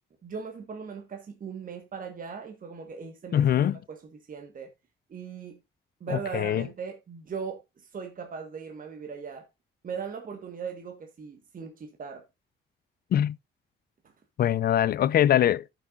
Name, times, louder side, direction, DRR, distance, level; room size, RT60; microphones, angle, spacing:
voice 1, 0.2-4.7 5.1-5.6 6.0-9.5 9.8-12.2 14.0-14.1, right 6 dB, 45° right, 1.4 m, -39 dB
voice 2, 3.3-3.8 6.1-6.7 13.1-13.4 14.4-15.7, left 11 dB, 50° left, 0.4 m, -23 dB
15.0 x 6.2 x 2.4 m
cardioid pair, 90°, 20 cm